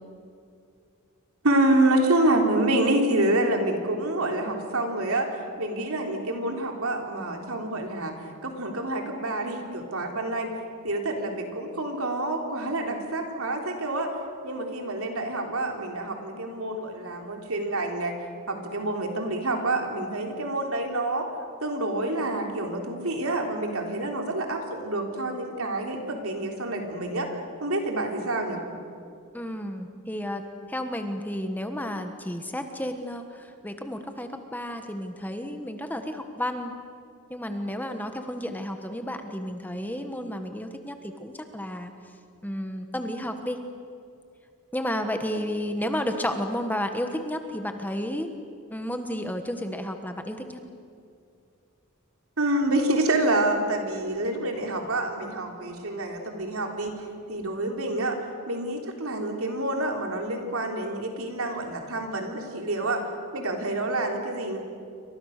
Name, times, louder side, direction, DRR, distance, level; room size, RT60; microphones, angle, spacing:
voice 1, 1.4-8.1 8.4-10.5 10.8-14.1 14.4-18.2 18.5-21.3 21.6-28.6 52.4-56.9 57.3-58.2 58.5-63.0 63.3-64.6, right 2 dB, 70° right, 2 dB, 3.7 m, -27 dB
voice 2, 29.3-36.7 37.3-41.9 42.4-43.6 44.7-48.3 48.7-50.6, equal, 10° left, 6 dB, 1.4 m, -32 dB
28.5 x 25.0 x 6.7 m, 2.4 s
head